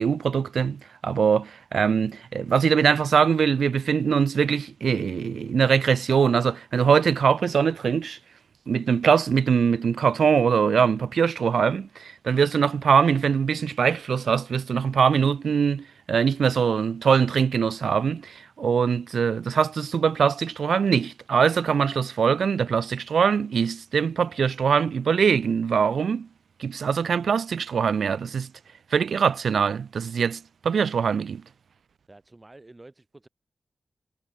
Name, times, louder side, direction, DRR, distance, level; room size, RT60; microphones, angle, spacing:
voice 1, 0.0-8.2 8.7-26.3 26.6-28.5 28.9-31.4, right 6 dB, 90° right, 1.1 m, -22 dB
voice 2, 32.1-33.3, right 2 dB, 20° right, 6.7 m, -49 dB
wide cardioid pair, 120°, 0 cm